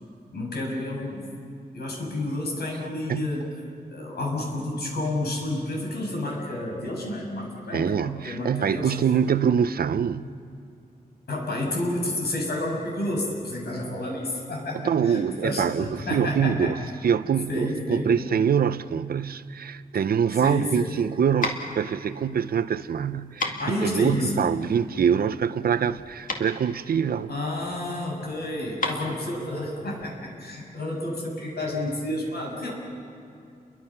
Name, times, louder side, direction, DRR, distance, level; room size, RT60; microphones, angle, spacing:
voice 1, 0.3-1.3 1.7-3.5 3.9-8.9 11.3-16.7 17.5-18.1 20.4-20.9 23.6-24.4 27.3-32.7, left 1 dB, 90° left, 6.5 m, -30 dB
voice 2, 7.7-10.3 14.7-27.3, right 7 dB, 70° right, 0.6 m, -24 dB
sound 1, 20.5-30.3, left 3 dB, 55° left, 2.2 m, -35 dB
30.0 x 23.0 x 5.9 m
wide cardioid pair, 140°, 16 cm